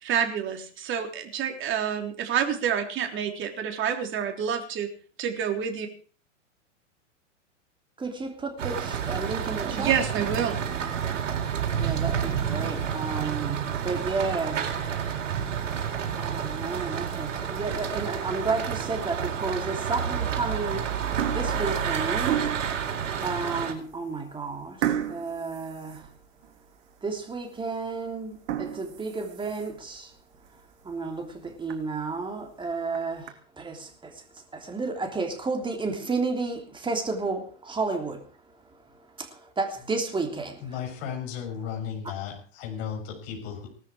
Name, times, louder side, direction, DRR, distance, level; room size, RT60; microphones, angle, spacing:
voice 1, 0.0-4.9 5.2-5.9 9.7-10.6, right 8 dB, 30° right, 3.5 m, -28 dB
voice 2, 8.0-10.0 11.8-14.7 16.1-20.9 21.3-22.6 23.2-26.1 27.0-30.2 30.5-38.6 38.9-40.8, right 4 dB, 15° right, 3.2 m, -32 dB
sound 1, 8.6-23.7, right 8 dB, 75° right, 4.3 m, -30 dB
sound 2, 18.5-18.9 19.5-19.6 20.4-20.7 20.9-22.8 23.4-23.5 23.9-24.0 24.8-26.6 27.0-27.1 27.6-27.7 28.3-29.9 30.4-30.5 30.9-31.0 31.3-31.4 31.7-31.8 32.7-33.3, right 10 dB, 60° right, 3.1 m, -33 dB
voice 3, 40.6-43.7, left 8 dB, 50° left, 7.0 m, -35 dB
18.5 x 13.5 x 5.0 m
hypercardioid pair, 120°, 38 cm